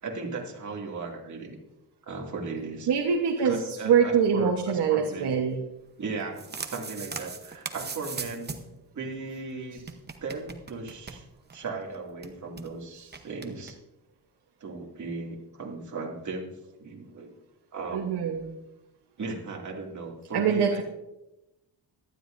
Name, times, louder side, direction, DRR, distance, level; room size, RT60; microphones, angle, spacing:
voice 1, 0.0-1.6 2.1-2.9 3.4-5.4 6.0-8.5 8.9-9.8 10.2-11.2 11.5-13.8 14.6-16.5 16.8-17.4 17.7-18.3 19.2-20.8, right 3 dB, 45° right, -1 dB, 2.5 m, -37 dB
voice 2, 2.9-5.6 17.9-18.5 20.3-20.8, right 7 dB, 70° right, 2 dB, 1.2 m, -24 dB
sound 1, 6.1-8.8 9.1-9.2 9.3-9.4 9.8-11.7 11.9-12.0 12.2-12.7 13.1-13.7, right 5 dB, 25° right, 0.9 m, -39 dB
17.5 x 12.5 x 2.6 m, 0.94 s
cardioid pair, 135°, 41 cm